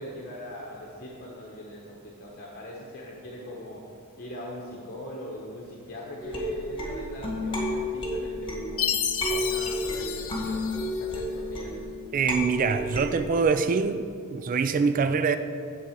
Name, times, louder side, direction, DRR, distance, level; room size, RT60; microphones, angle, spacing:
voice 1, 0.0-3.8 4.2-8.9 9.3-11.7, left 1 dB, 45° left, 1.0 m, -40 dB
sound 1, 6.2-13.4, left 1 dB, 25° left, 1.7 m, -32 dB
Chime, 8.8-11.2, left 9 dB, 65° left, 0.6 m, -31 dB
voice 2, 12.1-15.4, right 5 dB, 40° right, 0.3 m, -24 dB
9.2 x 4.1 x 7.1 m
head